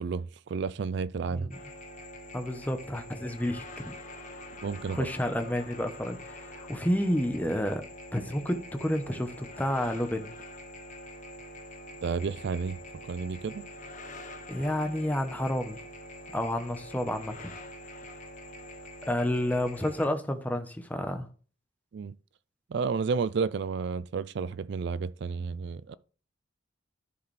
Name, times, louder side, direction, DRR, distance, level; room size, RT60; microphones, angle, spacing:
voice 1, 0.0-1.5 4.6-5.1 12.0-12.8 13.0-13.7 21.9-22.1 22.7-25.9, right 5 dB, 60° right, 0.4 m, -31 dB
sound 1, 1.5-20.1, left 1 dB, 40° left, 1.0 m, -45 dB
voice 2, 2.3-4.0 4.9-7.8 8.1-10.3 14.5-15.8 16.3-17.5 19.1-21.3, left 1 dB, 10° left, 0.9 m, -30 dB
13.5 x 4.7 x 3.3 m
head